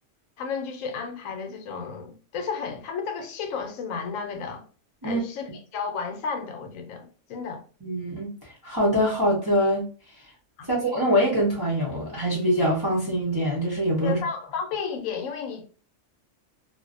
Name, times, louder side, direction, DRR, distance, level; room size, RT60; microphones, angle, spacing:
voice 1, 0.4-4.6 5.0-7.6 10.6-10.7 14.0-15.6, left 5 dB, 75° left, 0.9 m, -33 dB
voice 2, 7.8-9.9 10.7-14.2, equal, 25° right, 0.5 m, -24 dB
2.5 x 2.1 x 2.4 m
omnidirectional pair, 1.4 m